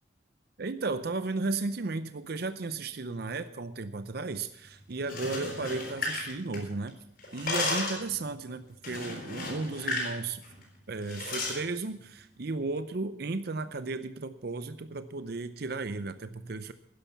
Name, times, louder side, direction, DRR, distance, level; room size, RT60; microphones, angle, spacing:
voice 1, 0.6-7.0 7.3-10.4 10.9-16.7, right 3 dB, 55° right, 12 dB, 0.6 m, -34 dB
sound 1, 5.0-6.9 7.2-8.1 8.8-10.2 10.4-10.6 11.1-11.6, left 2 dB, 55° left, 5.1 m, -33 dB
12.5 x 10.0 x 7.2 m, 0.72 s
head